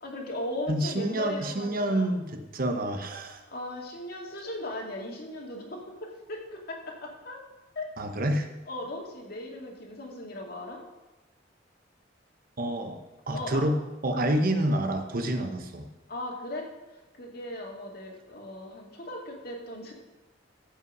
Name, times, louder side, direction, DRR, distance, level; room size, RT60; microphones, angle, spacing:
voice 1, 0.0-2.1 3.5-7.4 7.8-7.9 8.7-10.8 13.3-13.6 16.1-16.7 17.2-19.9, left 1 dB, 55° left, 0 dB, 2.2 m, -37 dB
voice 2, 0.7-3.4 8.0-8.5 12.6-13.0 13.3-13.8 14.0-15.8, right 1 dB, 50° right, 6 dB, 1.0 m, -28 dB
15.0 x 5.6 x 5.4 m, 1.1 s
head